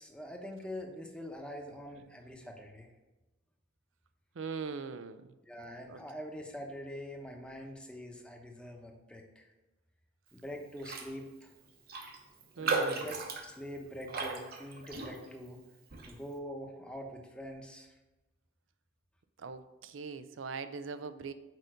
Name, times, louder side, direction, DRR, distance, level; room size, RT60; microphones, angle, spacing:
voice 1, 0.0-2.9 5.4-9.5 10.3-11.5 12.6-15.6 16.0-17.9, equal, 5° left, 1 dB, 0.9 m, -44 dB
voice 2, 4.4-5.2 5.9-6.0 12.6-13.0 19.4-21.3, right 5 dB, 80° right, 11 dB, 0.5 m, -41 dB
Raindrop, 10.8-11.1 11.4-11.5 11.9-15.5 15.9-16.2, right 3 dB, 50° right, 1.0 m, -36 dB
6.6 x 5.2 x 5.0 m, 1.1 s
head